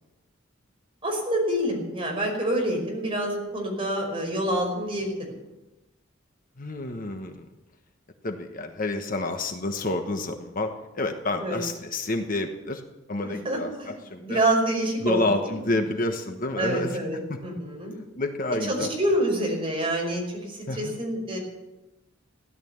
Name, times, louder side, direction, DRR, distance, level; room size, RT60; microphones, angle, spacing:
voice 1, 1.0-5.4 11.4-11.6 13.2-15.7 16.6-17.9 18.6-21.4, right 1 dB, 25° right, 0 dB, 5.2 m, -27 dB
voice 2, 6.6-7.5 8.2-10.7 10.9-12.8 13.1-14.4 15.0-17.0 17.3-17.4 18.2-18.9 20.7-20.9, left 2 dB, 45° left, 5 dB, 1.2 m, -29 dB
16.5 x 11.5 x 7.3 m, 1.0 s
head